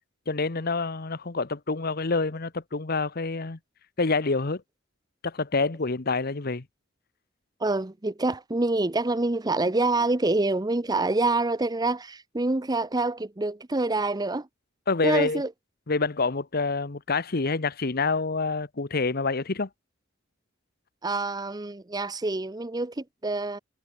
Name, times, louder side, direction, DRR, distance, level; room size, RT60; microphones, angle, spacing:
voice 1, 0.3-3.6 4.0-4.6 5.2-6.6 14.9-15.4 15.9-19.7, left 3 dB, 50° left, 1.0 m, -27 dB
voice 2, 7.6-14.5 15.0-15.5 21.0-23.6, right 2 dB, 20° right, 0.7 m, -26 dB
head